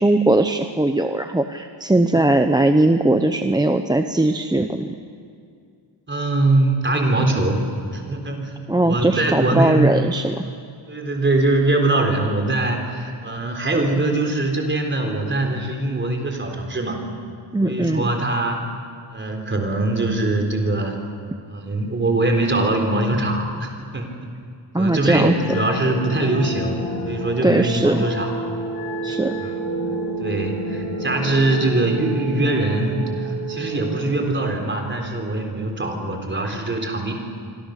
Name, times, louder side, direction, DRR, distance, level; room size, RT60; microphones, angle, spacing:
voice 1, 0.0-5.0 8.7-10.4 17.5-18.1 24.7-25.4 27.4-28.1 29.0-29.4, right 2 dB, 10° right, 6 dB, 0.8 m, -19 dB
voice 2, 6.1-7.7 7.9-8.5 8.8-9.9 10.9-17.0 17.6-18.6 19.1-21.0 21.5-24.1 24.8-26.8 27.0-28.3 29.3-29.5 30.2-37.1, right 2 dB, 25° right, 3 dB, 3.9 m, -22 dB
sound 1, 25.1-34.2, right 1 dB, 50° left, 3.2 m, -29 dB
26.5 x 25.5 x 6.7 m, 2.3 s
wide cardioid pair, 130°, 47 cm